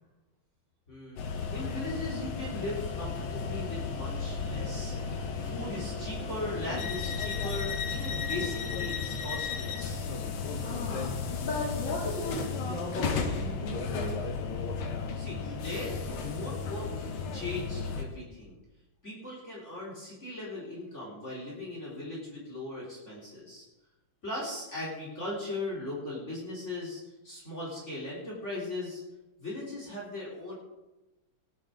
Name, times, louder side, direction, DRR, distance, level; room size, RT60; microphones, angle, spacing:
voice 1, 0.9-10.1 15.2-18.6 19.0-23.7 24.2-29.0 29.4-30.6, left 2 dB, 35° left, -5 dB, 3.9 m, -39 dB
sound 1, 1.2-18.0, left 5 dB, 90° left, 2.1 m, -34 dB
voice 2, 10.6-14.2 15.4-15.5, left 2 dB, 60° left, -7 dB, 4.2 m, -37 dB
18.0 x 11.0 x 3.8 m, 1.0 s
omnidirectional pair, 2.3 m